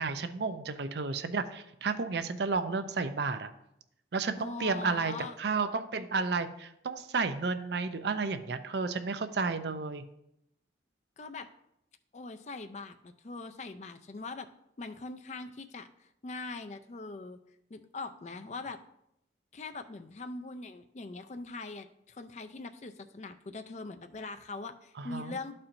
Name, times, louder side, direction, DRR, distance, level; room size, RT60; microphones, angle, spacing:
voice 1, 0.0-3.5 4.1-10.0 25.0-25.4, right 4 dB, 65° right, 10 dB, 0.5 m, -32 dB
voice 2, 4.4-5.4 11.2-11.5 12.1-14.5 14.8-17.4 17.7-18.8 19.5-25.5, left 3 dB, 40° left, 9 dB, 0.4 m, -42 dB
12.5 x 4.3 x 2.6 m, 0.80 s
head